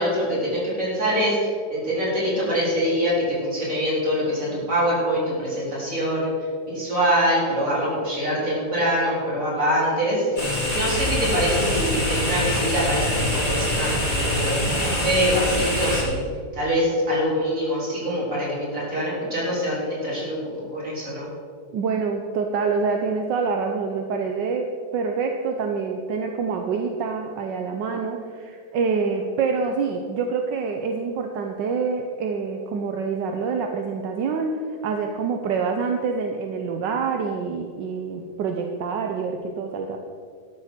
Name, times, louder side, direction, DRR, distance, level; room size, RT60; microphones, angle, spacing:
voice 1, 0.0-6.3 6.7-10.3 10.7-16.2 16.5-21.3, equal, 45° right, -6 dB, 4.7 m, -24 dB
sound 1, 10.4-16.0, left 1 dB, 25° left, 3.2 m, -24 dB
voice 2, 21.7-40.0, right 5 dB, 80° right, 4 dB, 1.5 m, -26 dB
12.5 x 12.5 x 4.4 m, 2.1 s
omnidirectional pair, 1.9 m